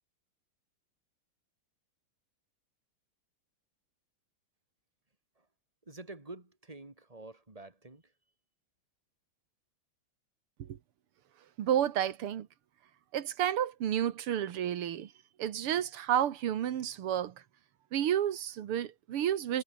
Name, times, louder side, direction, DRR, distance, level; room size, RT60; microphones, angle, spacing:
voice 1, 5.9-8.1, right 2 dB, 15° right, 3.5 m, -48 dB
voice 2, 11.6-12.5 13.1-15.1 15.4-17.3 17.9-19.6, right 10 dB, 90° right, 2.2 m, -31 dB
omnidirectional pair, 2.4 m